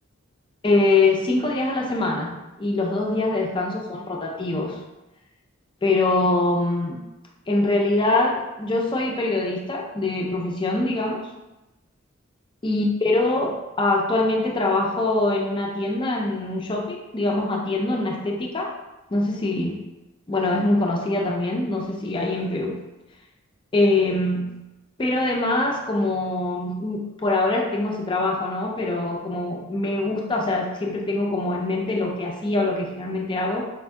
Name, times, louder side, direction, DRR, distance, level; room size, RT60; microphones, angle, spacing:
voice 1, 0.6-4.8 5.8-7.0 7.5-11.3 12.6-18.7 19.1-19.8 20.3-22.8 23.7-24.6 25.0-33.7, left 2 dB, 25° left, 0 dB, 0.4 m, -23 dB
4.3 x 2.6 x 2.2 m, 1.0 s
head